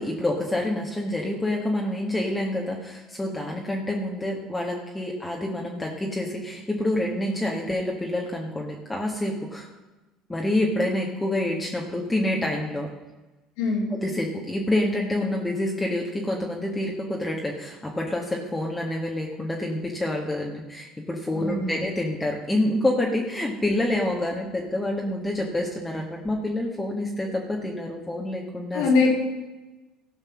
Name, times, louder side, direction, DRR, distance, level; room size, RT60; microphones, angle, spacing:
voice 1, 0.0-9.7 10.3-12.9 13.9-28.8, left 1 dB, 10° left, -1 dB, 1.6 m, -27 dB
voice 2, 13.6-13.9 21.3-21.7 28.7-29.1, left 3 dB, 80° left, -1 dB, 2.9 m, -22 dB
15.5 x 5.3 x 6.2 m, 1.1 s
supercardioid pair, 85°, 0 cm